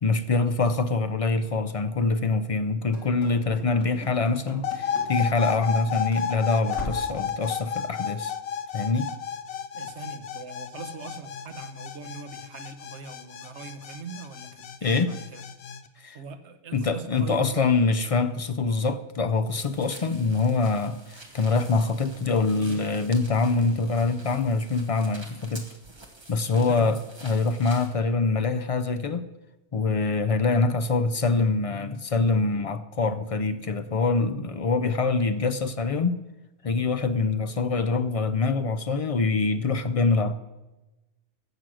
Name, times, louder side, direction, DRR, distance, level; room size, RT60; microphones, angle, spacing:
voice 1, 0.0-8.3 8.7-9.1 14.8-15.2 16.0-16.2 16.7-25.6 26.3-29.3 29.7-36.2 36.6-40.3, left 3 dB, 45° left, 0.4 m, -25 dB
Run / Slam, 2.9-5.8 6.1-6.2 6.7-7.2, left 2 dB, 85° left, 2.3 m, -40 dB
sound 1, 4.6-15.8, left 8 dB, 65° left, 0.9 m, -32 dB
voice 2, 9.7-15.4 16.1-17.6 26.5-26.9, right 5 dB, 70° right, 1.2 m, -41 dB
sound 2, 19.5-27.9, right 2 dB, 25° right, 1.4 m, -48 dB
15.0 x 6.2 x 6.3 m
omnidirectional pair, 1.2 m